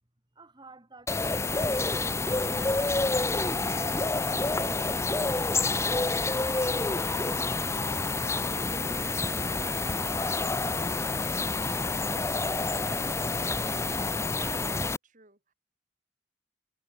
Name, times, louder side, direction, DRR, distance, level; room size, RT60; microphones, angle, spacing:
voice 1, 0.3-5.1 5.5-6.7 7.2-10.0, right 2 dB, 25° right, 2.1 m, -52 dB
sound 1, 1.1-15.0, left 3 dB, 15° left, 0.7 m, -28 dB
voice 2, 14.0-15.5, right 3 dB, 45° right, 6.4 m, -56 dB
head